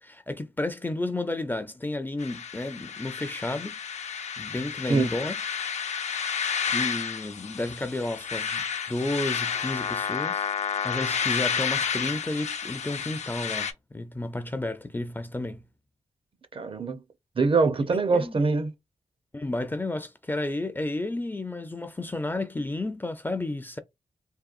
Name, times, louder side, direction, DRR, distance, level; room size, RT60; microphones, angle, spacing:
voice 1, 0.0-3.7 4.4-5.4 6.7-10.5 10.8-15.6 18.1-18.3 19.3-23.8, left 2 dB, 15° left, 0.4 m, -32 dB
sound 1, 2.2-13.7, left 6 dB, 65° left, 0.5 m, -31 dB
voice 2, 16.5-17.0 17.4-18.7, right 4 dB, 45° right, 0.6 m, -23 dB
3.7 x 2.2 x 2.4 m
cardioid pair, 70°, 13 cm